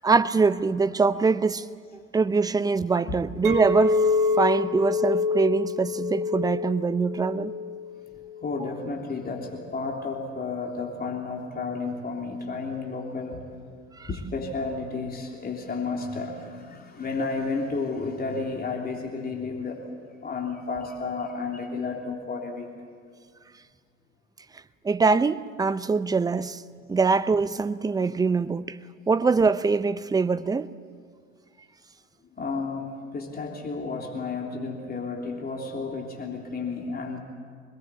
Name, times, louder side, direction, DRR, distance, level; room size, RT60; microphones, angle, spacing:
voice 1, 0.0-1.7 2.1-7.5 14.0-14.1 24.8-26.6 26.9-28.8 29.1-30.7, right 4 dB, 10° right, 0.6 m, -23 dB
Chink clink, 3.4-8.7, left 4 dB, 50° right, 2.9 m, -27 dB
voice 2, 8.4-13.4 14.1-19.8 20.2-22.7 32.4-37.2, left 4 dB, 25° left, 3.4 m, -32 dB
25.0 x 20.5 x 8.6 m
figure-of-eight pair, 75°, 39 cm